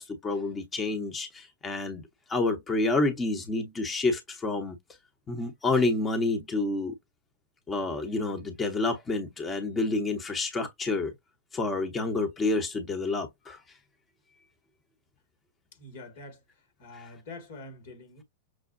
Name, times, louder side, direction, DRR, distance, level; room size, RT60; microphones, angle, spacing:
voice 1, 0.0-2.0 2.3-4.8 5.3-6.9 7.7-11.1 11.5-13.6 16.9-17.0, left 2 dB, 20° left, 0.9 m, -29 dB
voice 2, 15.7-16.4 16.8-18.2, left 2 dB, 65° left, 1.7 m, -45 dB
6.2 x 2.1 x 2.5 m
hypercardioid pair, 100°, 0 cm